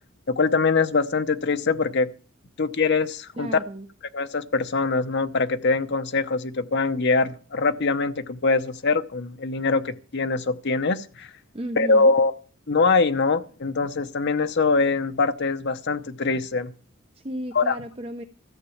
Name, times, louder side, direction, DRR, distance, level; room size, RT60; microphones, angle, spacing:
voice 1, 0.3-2.1 2.6-3.5 4.1-11.3 11.8-12.3 12.7-16.7 17.5-17.8, left 4 dB, 55° left, 0.9 m, -23 dB
voice 2, 3.3-3.9 11.5-12.1 17.1-18.2, right 1 dB, 30° right, 0.7 m, -34 dB
13.5 x 8.1 x 7.1 m
head